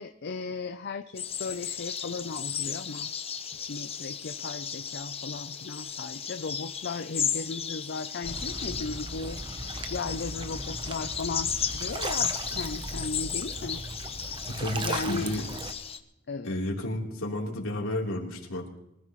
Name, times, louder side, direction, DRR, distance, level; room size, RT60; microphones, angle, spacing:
voice 1, 0.0-3.1 3.7-9.4 9.9-13.8 14.8-15.3 16.3-16.5, left 4 dB, 50° left, 6 dB, 0.6 m, -36 dB
sound 1, 1.2-16.0, left 7 dB, 30° left, 1.0 m, -35 dB
sound 2, 8.2-15.7, right 2 dB, 25° right, 0.8 m, -38 dB
voice 2, 14.5-15.5 16.4-18.8, left 1 dB, 70° left, -3 dB, 3.6 m, -32 dB
24.0 x 15.0 x 3.2 m, 0.87 s
head